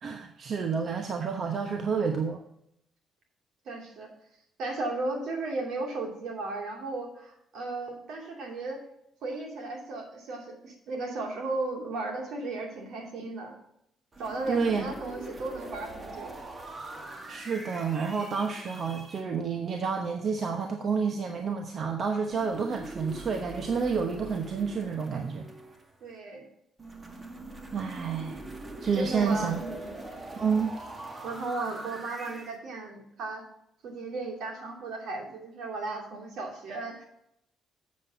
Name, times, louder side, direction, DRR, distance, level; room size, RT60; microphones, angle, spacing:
voice 1, 0.0-2.4 14.5-14.9 17.3-25.5 27.7-28.5 28.8-29.6 30.4-30.7, right 5 dB, 55° right, 4 dB, 1.0 m, -29 dB
voice 2, 3.6-4.1 4.6-8.8 9.2-13.6 14.2-16.4 26.0-26.5 28.9-30.0 31.2-33.4 33.8-37.0, right 3 dB, 75° right, 1 dB, 2.6 m, -35 dB
sound 1, 14.1-19.2 22.3-26.1 26.8-32.6, right 2 dB, 30° right, 1.7 m, -42 dB
7.6 x 7.3 x 4.9 m, 0.75 s
cardioid pair, 90°, 0 cm